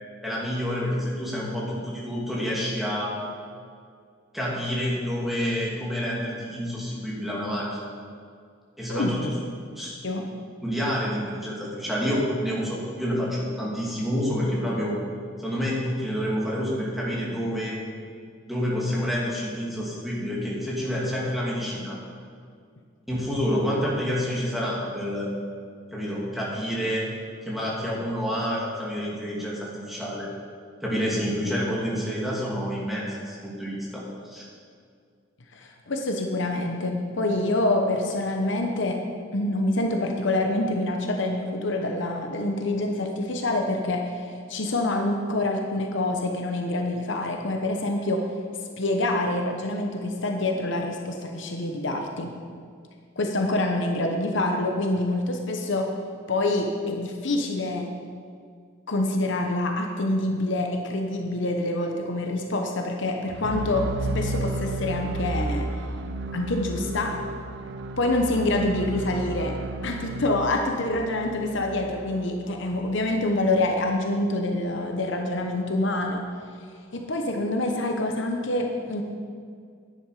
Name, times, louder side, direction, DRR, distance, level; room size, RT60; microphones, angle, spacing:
voice 1, 0.2-3.1 4.3-7.9 8.8-9.3 9.8-10.0 10.6-15.0 15.4-17.8 18.5-22.0 23.1-25.3 25.9-27.1 27.4-30.3 30.8-34.5, equal, ahead, -6 dB, 2.5 m, -28 dB
voice 2, 35.5-39.0 39.3-48.3 48.8-52.3 53.2-55.9 56.3-57.9 58.9-65.7 66.3-67.2 68.0-76.2 76.9-79.0, left 2 dB, 60° left, 3 dB, 0.9 m, -26 dB
sound 1, 63.3-73.3, right 2 dB, 60° right, 0.6 m, -33 dB
10.5 x 10.0 x 4.9 m, 2.1 s
head